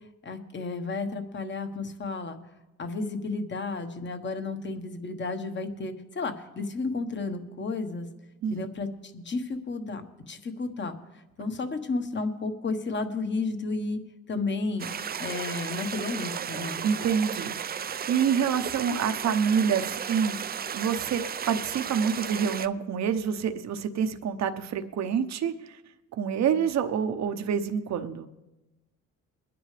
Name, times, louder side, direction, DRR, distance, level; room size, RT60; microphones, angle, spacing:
voice 1, 0.2-2.4 2.8-8.1 8.5-10.0 10.3-11.0 11.4-14.0 14.3-14.9 15.2-16.8, left 3 dB, 40° left, 7 dB, 1.4 m, -32 dB
sound 1, 14.8-22.7, right 8 dB, 30° right, 0.4 m, -34 dB
voice 2, 16.8-21.2 21.5-25.8 26.1-28.3, right 7 dB, 60° right, 8 dB, 0.9 m, -27 dB
23.0 x 10.0 x 3.4 m, 1.0 s
cardioid pair, 90°, 30 cm